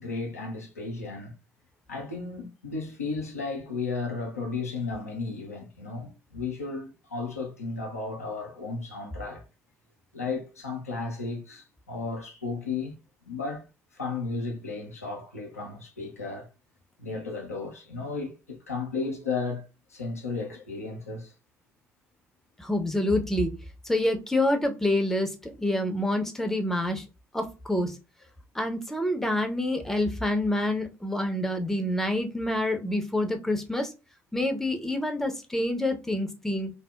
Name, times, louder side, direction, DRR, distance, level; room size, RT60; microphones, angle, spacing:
voice 1, 0.0-1.3 1.9-9.4 10.1-12.9 13.2-13.6 13.9-16.5 17.0-19.6 19.9-21.3, left 4 dB, 85° left, 0.4 m, -34 dB
voice 2, 22.6-23.5 23.8-27.0 27.3-28.0 28.5-33.9 34.3-36.7, left 1 dB, 5° left, 0.6 m, -27 dB
2.7 x 2.0 x 2.2 m
figure-of-eight pair, 45°, 8 cm